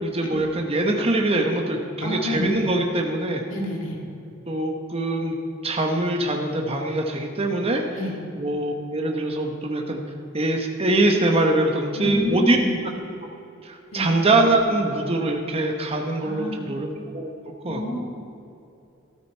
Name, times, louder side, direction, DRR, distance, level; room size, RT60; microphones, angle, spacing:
voice 1, 0.0-3.4 4.5-5.3 5.6-7.8 8.3-10.0 10.3-12.6 13.6-18.0, right 2 dB, 30° right, 2 dB, 1.1 m, -23 dB
voice 2, 2.0-2.5 3.5-4.0 7.9-8.2 11.9-12.8 13.9-14.1 16.2-16.8 17.6-18.0, left 1 dB, 70° left, -2 dB, 2.9 m, -29 dB
13.0 x 13.0 x 4.6 m, 2.7 s
head